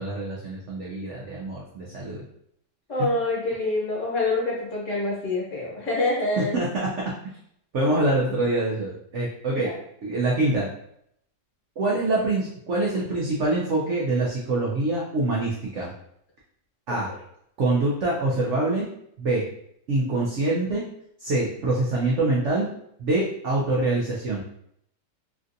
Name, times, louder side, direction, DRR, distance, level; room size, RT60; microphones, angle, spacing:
voice 1, 0.0-2.2 3.0-3.1 6.4-6.9 7.7-9.7 10.0-10.7 11.8-15.9 16.9-17.1 17.6-18.9 19.2-19.4 19.9-20.8 21.2-22.7 23.0-24.4, right 2 dB, 75° right, -4 dB, 0.6 m, -25 dB
voice 2, 2.9-6.6 9.5-9.7 16.9-17.0, left 2 dB, 50° left, -5 dB, 1.2 m, -26 dB
3.2 x 2.6 x 2.5 m, 0.73 s
omnidirectional pair, 1.9 m